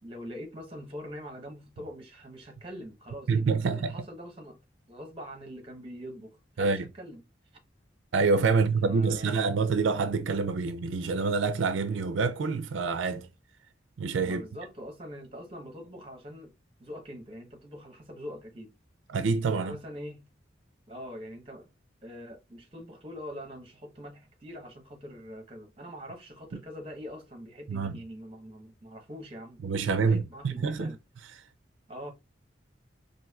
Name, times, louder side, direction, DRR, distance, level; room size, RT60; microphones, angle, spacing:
voice 1, 0.0-4.6 4.9-7.2 8.5-9.5 14.2-16.5 16.8-18.7 19.5-20.2 20.9-21.7 22.0-31.0 31.9-32.1, equal, 30° right, 0.9 m, -43 dB
voice 2, 3.3-3.9 6.6-6.8 8.1-13.3 14.0-14.4 19.1-19.8 27.7-27.9 29.6-30.9, right 4 dB, 85° right, 0.4 m, -26 dB
4.2 x 2.7 x 2.2 m
head